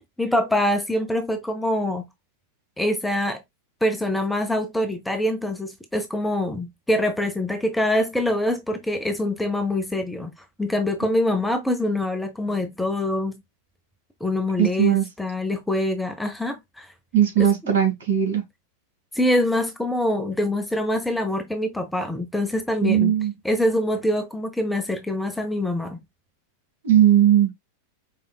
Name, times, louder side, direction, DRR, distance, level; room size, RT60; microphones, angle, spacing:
voice 1, 0.2-2.0 2.8-3.4 3.8-10.3 10.6-13.4 14.2-16.9 17.4-17.5 19.1-23.1 23.4-26.0, left 1 dB, 5° left, 0.9 m, -24 dB
voice 2, 14.6-15.1 17.1-18.4 22.8-23.3 26.8-27.5, right 10 dB, 60° right, 2.2 m, -18 dB
4.8 x 3.5 x 2.3 m
figure-of-eight pair, 90°, 0 cm